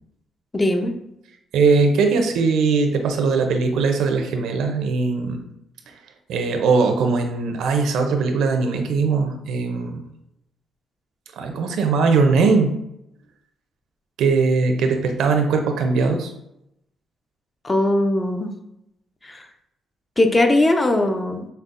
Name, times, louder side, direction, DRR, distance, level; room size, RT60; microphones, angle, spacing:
voice 1, 0.5-1.0 17.6-18.5 19.2-19.5 20.2-21.5, left 1 dB, 20° left, 6 dB, 0.4 m, -19 dB
voice 2, 1.5-5.4 6.3-10.0 11.4-12.7 14.2-16.3, right 4 dB, 80° right, 5 dB, 0.5 m, -20 dB
5.4 x 2.0 x 2.5 m, 0.81 s
cardioid pair, 90°, 0 cm